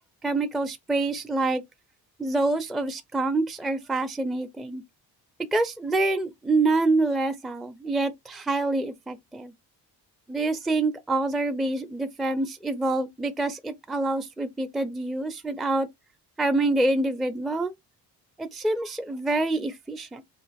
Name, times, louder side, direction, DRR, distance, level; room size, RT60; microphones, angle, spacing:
voice 1, 0.0-1.6 2.2-4.8 5.5-9.5 10.3-15.9 16.4-17.7 18.4-20.2, right 2 dB, ahead, 0.4 m, -26 dB
3.1 x 2.4 x 4.1 m
cardioid pair, 110°, 40 cm